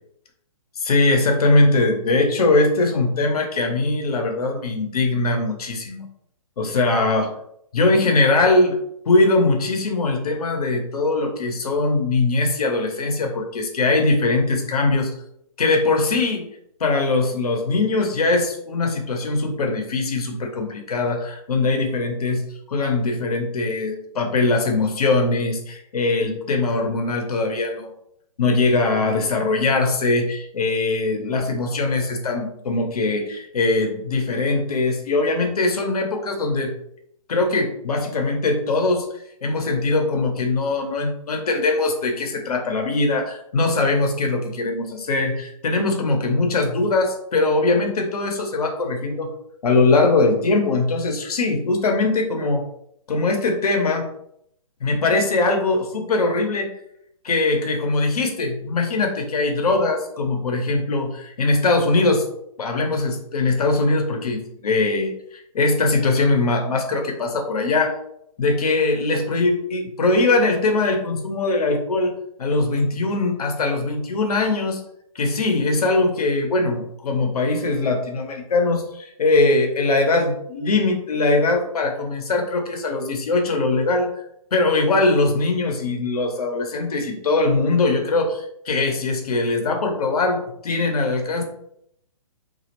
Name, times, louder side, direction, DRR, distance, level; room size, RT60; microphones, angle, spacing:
voice 1, 0.8-6.1 6.6-7.3 7.7-8.8 9.1-15.1 15.6-16.5 16.8-27.9 28.4-36.7 37.3-39.1 39.4-49.3 49.6-52.6 53.1-54.1 54.8-56.7 57.2-62.3 62.6-68.0 68.4-72.1 72.4-74.8 75.1-84.1 84.5-91.4, left 3 dB, 80° left, 3 dB, 0.7 m, -21 dB
2.3 x 2.1 x 2.9 m, 0.73 s
hypercardioid pair, 150°, 19 cm